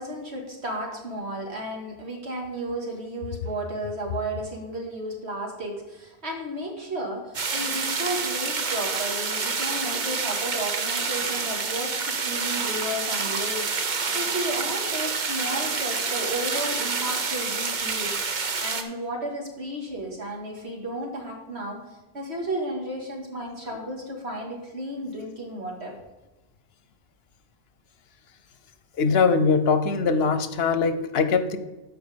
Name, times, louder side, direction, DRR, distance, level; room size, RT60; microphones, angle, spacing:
voice 1, 0.0-21.8 22.1-25.9, right 1 dB, 90° right, 0 dB, 2.4 m, -33 dB
sound 1, 7.3-18.8, right 4 dB, 50° right, 1.0 m, -28 dB
voice 2, 29.0-31.6, left 5 dB, 70° left, 11 dB, 1.0 m, -22 dB
13.0 x 5.1 x 5.1 m, 1.1 s
omnidirectional pair, 1.1 m